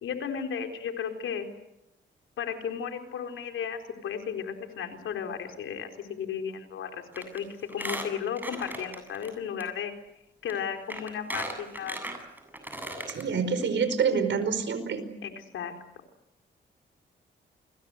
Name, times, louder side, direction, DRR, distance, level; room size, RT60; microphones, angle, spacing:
voice 1, 0.0-1.5 2.4-9.9 10.4-12.0 15.2-15.7, left 7 dB, 90° left, 5 dB, 4.2 m, -34 dB
Squeak, 7.1-7.4 7.7-9.3 9.6-9.7 10.5-10.6 10.9-13.2 13.6-13.7 13.9-14.0, right 1 dB, 10° right, 7.9 m, -37 dB
voice 2, 13.1-15.1, right 6 dB, 70° right, 11 dB, 5.0 m, -27 dB
29.5 x 22.5 x 8.1 m, 0.83 s
cardioid pair, 70°, 20 cm